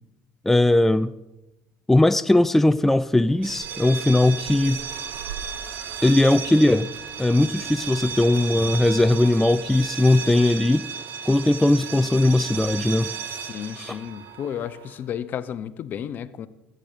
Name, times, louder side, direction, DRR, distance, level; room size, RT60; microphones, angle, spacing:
voice 1, 0.5-1.1 1.9-4.8 6.0-6.9 7.2-10.9 11.3-13.1 13.8-14.0, left 1 dB, 5° left, 13 dB, 0.4 m, -19 dB
sound 1, 3.4-15.1, right 6 dB, 55° right, 1.1 m, -34 dB
Animal, 3.4-9.9, right 6 dB, 85° right, 1.1 m, -45 dB
voice 2, 13.3-16.5, left 9 dB, 55° left, 15 dB, 0.7 m, -33 dB
15.0 x 7.7 x 5.1 m, 0.97 s
supercardioid pair, 80°, 4 cm